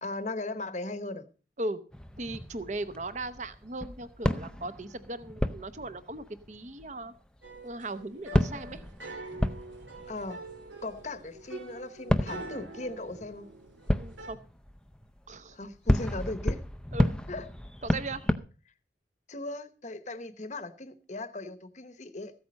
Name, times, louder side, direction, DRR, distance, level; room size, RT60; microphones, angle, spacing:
voice 1, 0.0-1.3 10.1-10.4 10.8-13.5 15.5-16.6 17.3-17.5 19.3-22.3, left 2 dB, 40° left, 0.9 m, -38 dB
sound 1, 1.9-7.5 8.0-8.1 8.3-11.4 12.1-18.4, equal, 5° left, 0.5 m, -32 dB
voice 2, 2.2-7.1 7.6-8.8 14.0-14.4 15.3-15.6 16.9-17.2 17.8-18.2, right 2 dB, 40° right, 0.8 m, -37 dB
sound 2, 7.4-14.4, right 2 dB, 90° right, 2.3 m, -45 dB
14.5 x 8.5 x 5.2 m
head